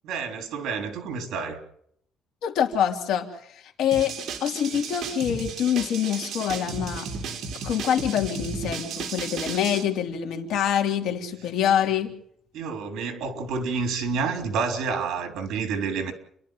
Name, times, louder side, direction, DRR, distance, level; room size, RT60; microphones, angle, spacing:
voice 1, 0.0-1.6 12.5-16.1, right 5 dB, 65° right, 3.6 m, -29 dB
voice 2, 2.4-3.3 3.8-4.1 4.4-7.1 7.6-12.1, left 9 dB, 70° left, 3.1 m, -25 dB
sound 1, 3.9-9.8, right 5 dB, 50° right, 2.6 m, -34 dB
29.5 x 11.5 x 9.2 m
cardioid pair, 165°, 0 cm